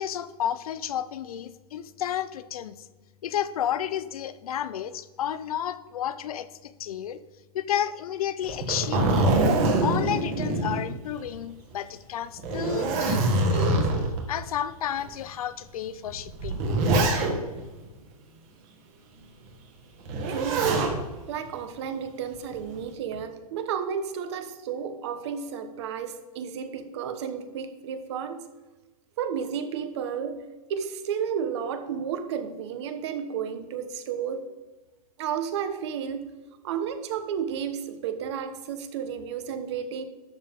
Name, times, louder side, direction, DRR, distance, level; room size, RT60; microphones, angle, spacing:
voice 1, 0.0-2.7 3.2-7.2 7.5-9.3 9.8-13.2 13.5-13.8 14.3-16.7, left 10 dB, 70° left, 14 dB, 0.7 m, -31 dB
Zipper (clothing), 8.4-11.4 11.7-11.8 12.4-14.2 15.0-15.1 16.1-17.6 20.1-21.0 22.3-22.8, right 2 dB, 30° right, 1.7 m, -24 dB
voice 2, 20.3-20.8 21.3-28.5 29.2-30.4 30.7-34.4 35.2-36.3 36.6-40.0, right 7 dB, 45° right, 9 dB, 1.1 m, -32 dB
12.0 x 7.1 x 3.8 m, 1.2 s
hypercardioid pair, 160°, 19 cm